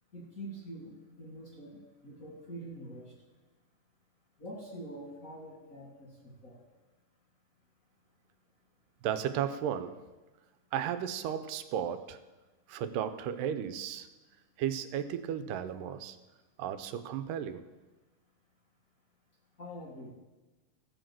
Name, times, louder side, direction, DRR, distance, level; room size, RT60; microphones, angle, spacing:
voice 1, 0.1-3.1 4.4-6.6 19.6-20.1, right 1 dB, 35° left, -4 dB, 1.5 m, -45 dB
voice 2, 9.0-10.0 10.7-12.2 12.7-14.1 14.6-16.2 16.6-17.7, right 9 dB, 85° right, 11 dB, 2.3 m, -34 dB
15.0 x 5.1 x 7.5 m, 1.2 s
omnidirectional pair, 3.8 m